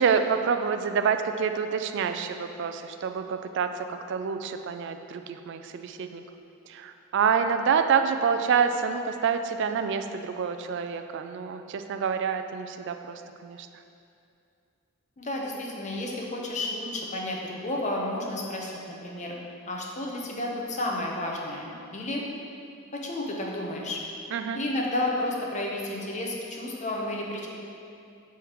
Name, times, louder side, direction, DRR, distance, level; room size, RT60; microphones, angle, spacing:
voice 1, 0.0-6.2 6.7-13.7 24.3-24.6, right 6 dB, 60° right, 7 dB, 0.3 m, -27 dB
voice 2, 15.2-19.3 19.7-22.2 22.9-24.0 24.5-27.5, left 1 dB, 35° left, -1 dB, 0.8 m, -31 dB
7.1 x 3.5 x 4.7 m, 2.6 s
head